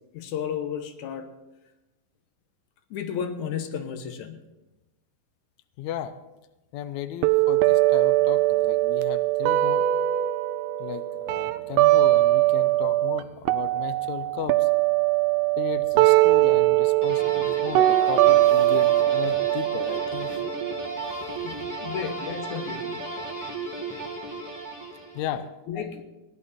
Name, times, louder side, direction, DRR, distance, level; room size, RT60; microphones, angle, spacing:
voice 1, 0.1-1.3 2.9-4.4 18.0-18.1 21.4-23.1 25.7-26.0, left 7 dB, 65° left, 8 dB, 2.2 m, -33 dB
voice 2, 5.8-6.2 6.7-9.9 10.8-14.7 15.6-20.6 21.1-21.7 25.1-25.5, left 10 dB, 90° left, 11 dB, 1.6 m, -36 dB
sound 1, 7.2-13.2 13.5-21.2, right 16 dB, 80° right, 2.2 m, -21 dB
sound 2, 17.0-25.3, right 3 dB, 10° right, 0.9 m, -34 dB
17.5 x 11.0 x 4.3 m, 1.0 s
omnidirectional pair, 4.1 m